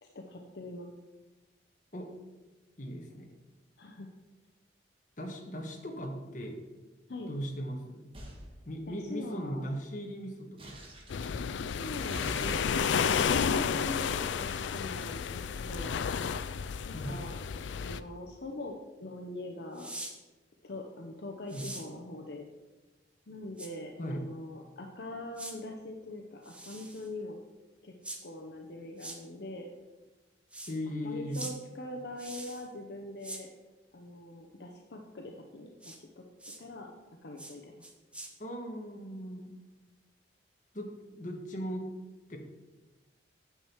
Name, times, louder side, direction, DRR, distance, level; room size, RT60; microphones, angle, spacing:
voice 1, 0.0-0.9 3.8-4.1 7.1-7.3 8.9-9.7 11.8-15.4 15.7-16.0 16.9-17.4 17.8-18.7 19.0-19.9 20.6-22.5 23.3-27.4 27.8-27.9 28.2-29.7 31.0-33.5 33.9-36.2 36.6-36.9 37.2-37.7, left 1 dB, 65° left, 2 dB, 0.8 m, -42 dB
voice 2, 2.8-3.3 5.2-6.6 7.3-8.1 8.6-10.8 11.3-11.7 16.9-17.2 21.5-21.7 24.0-24.2 30.7-31.5 38.4-39.5 40.7-41.9 42.3-42.4, equal, 45° left, 1 dB, 1.4 m, -38 dB
sound 1, 8.1-8.4 10.6-11.3 12.0-14.7, equal, 30° right, 1.5 m, -44 dB
sound 2, 11.1-18.0, left 7 dB, 85° left, 0.4 m, -31 dB
sound 3, 19.7-20.1 21.5-21.9 23.6-23.7 25.4-25.5 26.4-27.1 28.0-28.2 29.0-29.2 30.5-30.7 31.3-31.5 32.2-32.7 33.2-33.4 35.8-36.0 36.4-36.6 37.4-37.5 37.8-38.3, right 1 dB, 5° right, 0.8 m, -43 dB
8.9 x 7.2 x 4.5 m, 1.2 s
head